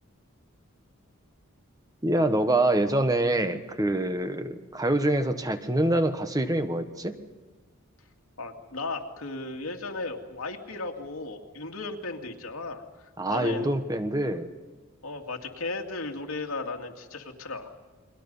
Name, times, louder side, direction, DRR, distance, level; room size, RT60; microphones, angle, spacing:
voice 1, 2.0-7.2 13.2-14.5, right 1 dB, 15° right, 8 dB, 1.2 m, -25 dB
voice 2, 8.4-12.8 13.3-13.7 15.0-17.7, left 3 dB, 85° left, 2 dB, 2.4 m, -35 dB
29.5 x 23.0 x 5.5 m, 1.3 s
head